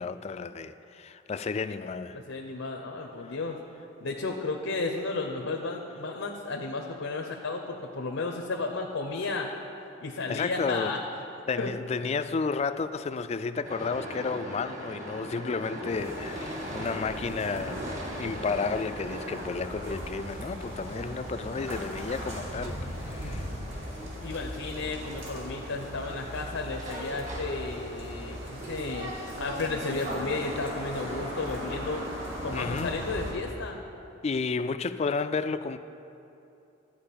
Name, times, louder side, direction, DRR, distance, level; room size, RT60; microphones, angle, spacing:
voice 1, 0.0-2.2 10.3-11.0 11.5-17.9 18.2-23.5 32.5-32.9 34.2-35.8, left 4 dB, 35° left, 11 dB, 0.3 m, -32 dB
voice 2, 2.1-3.6 4.0-9.5 10.0-11.0 11.6-11.7 15.7-16.1 23.1-23.6 24.2-32.1 32.4-33.8, left 3 dB, 85° left, 1 dB, 0.8 m, -33 dB
sound 1, 13.6-28.4, equal, 40° right, 1.6 m, -42 dB
sound 2, 15.9-33.3, equal, 70° right, 2.4 m, -38 dB
12.5 x 4.8 x 8.6 m, 2.8 s
head